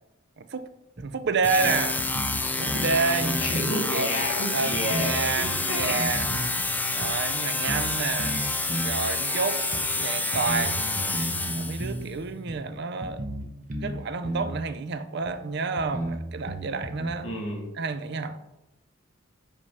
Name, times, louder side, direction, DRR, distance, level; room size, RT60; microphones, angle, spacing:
voice 1, 0.4-0.7 1.0-2.0 2.6-3.4 3.9-4.1 4.5-6.3 6.9-8.4 8.8-9.6 10.0-10.8 11.5-13.3 13.8-17.3 17.7-18.4, right 4 dB, 55° right, 0.5 m, -29 dB
sound 1, 1.0-1.1 1.4-1.5 2.0-2.9 3.2-3.5 4.2-4.3 4.7-6.5 7.0-7.1 7.7-7.9 8.2-9.0 9.7-9.8 10.3-12.1 12.5-12.6 13.0-14.0 14.2-14.5 15.2-15.3 15.8-17.1, right 1 dB, 40° right, 1.0 m, -33 dB
sound 2, 1.4-12.0, left 2 dB, 10° left, 0.4 m, -28 dB
voice 2, 3.4-6.1 17.2-17.7, left 1 dB, 85° left, 2.2 m, -30 dB
5.3 x 4.8 x 5.4 m
head